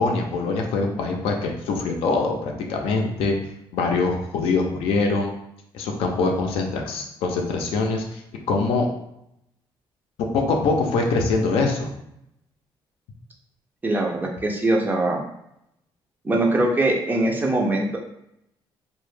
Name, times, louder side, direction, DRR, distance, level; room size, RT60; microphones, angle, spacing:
voice 1, 0.0-3.3 3.7-5.3 5.7-8.2 8.5-8.9 10.2-11.9, left 3 dB, 80° left, 2 dB, 0.4 m, -23 dB
voice 2, 13.8-15.2 16.2-18.0, right 2 dB, 20° right, 0 dB, 0.4 m, -22 dB
2.1 x 2.0 x 3.1 m, 0.78 s
cardioid pair, 110°, 10 cm